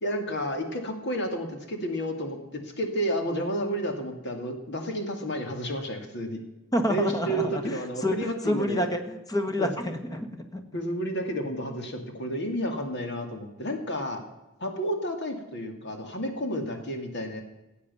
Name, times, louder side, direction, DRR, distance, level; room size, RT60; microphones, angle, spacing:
voice 1, 0.0-6.4 6.9-8.8 9.6-9.7 10.7-14.2 14.6-17.4, equal, 60° left, 4 dB, 2.3 m, -31 dB
voice 2, 6.7-10.3 10.5-10.6, left 1 dB, 20° left, 7 dB, 1.5 m, -28 dB
16.0 x 8.6 x 7.0 m, 1.0 s
head